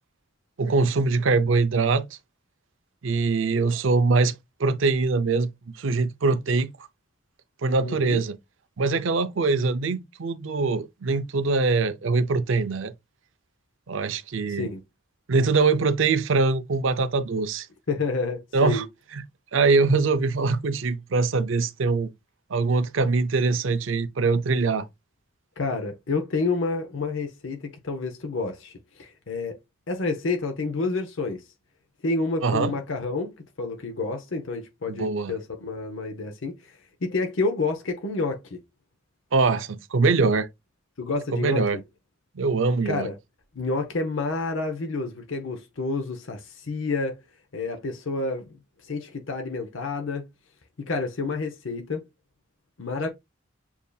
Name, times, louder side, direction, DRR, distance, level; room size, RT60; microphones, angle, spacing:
voice 1, 0.6-2.0 3.0-4.3 4.6-5.5 5.8-6.7 7.6-8.3 8.8-12.9 13.9-14.7 15.3-17.7 18.5-18.8 19.1-19.2 19.5-22.1 22.5-24.8 32.4-32.7 34.9-35.3 39.3-40.5 41.3-41.8 42.4-43.1, right 4 dB, 70° right, 0.5 m, -23 dB
voice 2, 7.8-8.2 14.5-14.8 17.9-18.9 25.6-29.6 29.9-31.4 32.0-33.3 33.6-38.6 41.0-41.6 42.8-43.2 43.5-47.2 47.5-48.5 48.8-50.3 50.9-52.0 52.8-53.1, left 3 dB, 70° left, 0.7 m, -29 dB
7.0 x 2.7 x 2.3 m
head